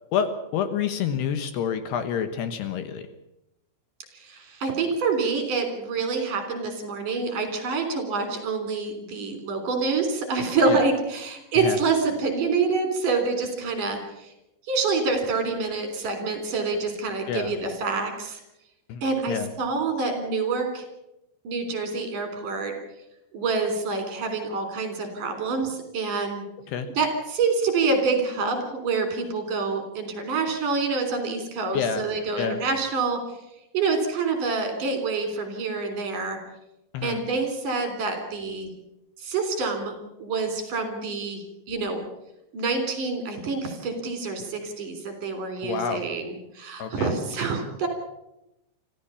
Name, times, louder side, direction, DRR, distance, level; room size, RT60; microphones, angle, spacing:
voice 1, 0.1-3.1 10.7-10.8 11.6-11.8 17.3-17.5 18.9-19.0 19.3-19.5 26.7-26.9 31.7-32.0 32.4-32.6 36.9-37.2 45.6-46.0 46.8-47.1, left 7 dB, 70° left, 9 dB, 3.0 m, -28 dB
voice 2, 4.1-14.3 14.7-18.4 19.0-20.8 21.4-22.7 23.3-26.4 26.9-33.2 33.7-36.4 37.0-38.7 39.2-42.0 42.5-47.9, right 4 dB, 50° right, 6 dB, 4.7 m, -27 dB
25.5 x 15.0 x 7.0 m, 0.89 s
omnidirectional pair, 5.3 m